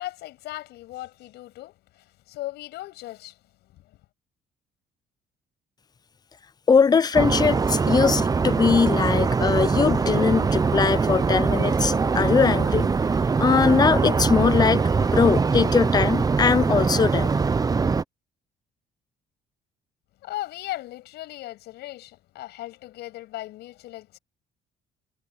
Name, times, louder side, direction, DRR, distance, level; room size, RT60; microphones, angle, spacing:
voice 1, 0.0-3.4 3.6-3.9 20.2-24.2, left 16 dB, 80° left, 7.8 m, -37 dB
voice 2, 6.7-12.9 13.4-17.3, left 5 dB, 25° left, 0.5 m, -21 dB
sound 1, 7.1-18.0, right 4 dB, 20° right, 0.8 m, -22 dB
cardioid pair, 110°, 17 cm